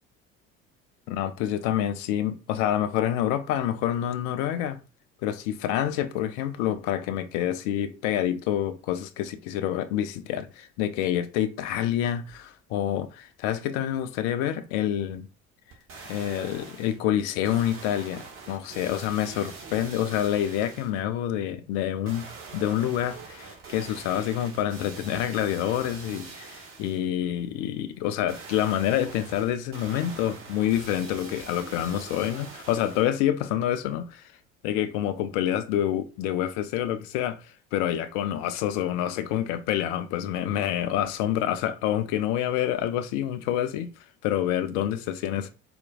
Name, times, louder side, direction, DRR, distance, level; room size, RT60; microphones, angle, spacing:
voice 1, 1.1-4.8 5.2-15.3 16.1-22.3 22.5-34.3 34.6-43.9 44.2-45.5, left 11 dB, 50° left, 0.4 m, -27 dB
sound 1, 15.7-17.0 17.4-21.0 22.0-27.0 28.3-33.2 33.7-33.8, right 4 dB, 35° right, 0.9 m, -44 dB
4.2 x 2.2 x 2.2 m
figure-of-eight pair, 55°, 38 cm